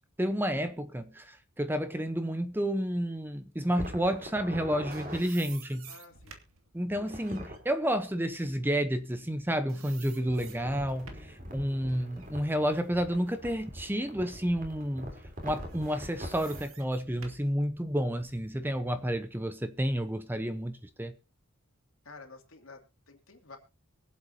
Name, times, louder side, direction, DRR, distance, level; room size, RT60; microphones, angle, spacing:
voice 1, 0.2-5.9 6.7-15.1 15.4-21.1, equal, 10° right, 0.8 m, -30 dB
sound 1, 3.7-5.2 6.9-7.6 10.3-16.7, equal, 40° right, 3.4 m, -43 dB
sound 2, 4.5-9.4 9.7-11.4 11.9-13.9 14.3-14.5 15.5-18.5, right 6 dB, 65° right, 2.3 m, -52 dB
voice 2, 5.9-6.4 22.0-23.6, left 3 dB, 70° left, 2.9 m, -51 dB
24.0 x 8.1 x 2.8 m
head